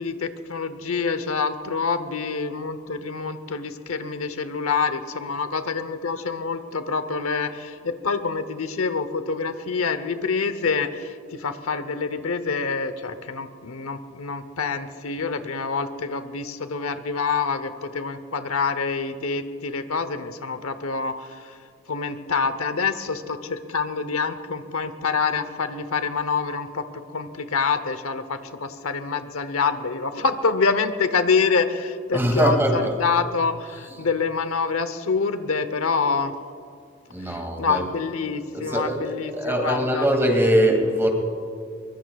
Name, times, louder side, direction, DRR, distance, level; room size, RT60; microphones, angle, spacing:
voice 1, 0.0-21.6 21.9-26.8 27.1-36.3 37.2-40.1, left 5 dB, 80° left, 10 dB, 0.9 m, -26 dB
voice 2, 32.1-32.9 37.1-37.9 38.5-41.1, equal, 10° right, 2 dB, 2.3 m, -22 dB
23.5 x 22.5 x 2.4 m, 2.3 s
head